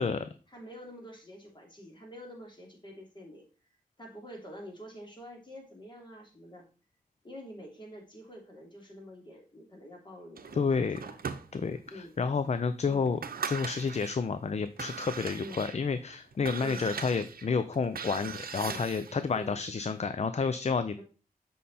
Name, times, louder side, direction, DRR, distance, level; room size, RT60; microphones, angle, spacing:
voice 1, 0.1-3.4 4.0-6.6 7.2-11.2 11.9-12.1 12.8-13.1 15.4-15.6 16.6-16.9 18.6-18.9 19.3-19.6 21.0-21.1, equal, 30° left, 0 dB, 3.2 m, -47 dB
sound 1, 10.4-11.9 12.4-12.5 13.0-14.2 14.7-19.2, right 6 dB, 80° right, 0.7 m, -40 dB
voice 2, 10.5-11.0 11.5-13.2 13.5-21.0, left 5 dB, 45° left, 11 dB, 0.5 m, -30 dB
7.4 x 5.4 x 4.2 m, 0.35 s
cardioid pair, 65°, 15 cm